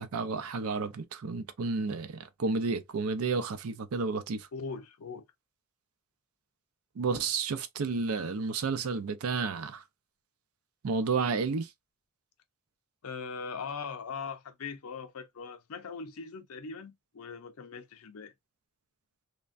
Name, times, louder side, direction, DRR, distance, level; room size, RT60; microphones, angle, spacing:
voice 1, 0.0-4.5 7.0-9.8 10.8-11.7, right 4 dB, 85° right, 0.5 m, -31 dB
voice 2, 4.5-5.2 13.0-18.3, left 5 dB, 90° left, 0.6 m, -40 dB
3.2 x 2.2 x 2.4 m
head